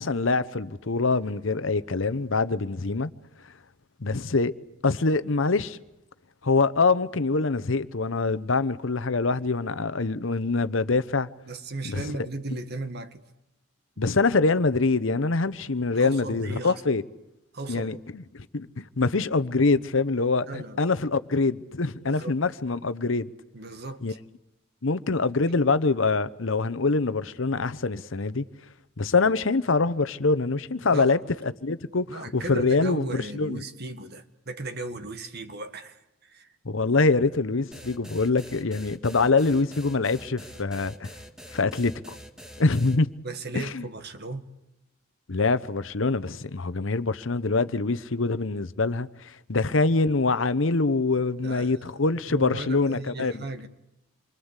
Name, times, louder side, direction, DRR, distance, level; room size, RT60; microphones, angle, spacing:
voice 1, 0.0-3.1 4.0-4.5 4.8-5.8 6.4-11.3 11.8-12.1 14.0-17.0 17.7-23.3 24.0-24.1 24.8-28.4 29.0-33.6 36.6-41.1 41.5-42.2 42.6-43.1 43.5-43.9 45.3-53.4, left 3 dB, 65° left, 0.9 m, -24 dB
voice 2, 11.4-13.2 15.9-16.8 17.5-18.0 20.5-20.8 22.0-22.3 23.5-24.2 30.9-31.2 32.1-36.5 43.2-44.4 51.4-51.9 52.3-53.7, right 2 dB, 50° right, 1.7 m, -36 dB
sound 1, 37.7-43.0, equal, 5° right, 1.7 m, -45 dB
27.5 x 24.0 x 8.2 m
head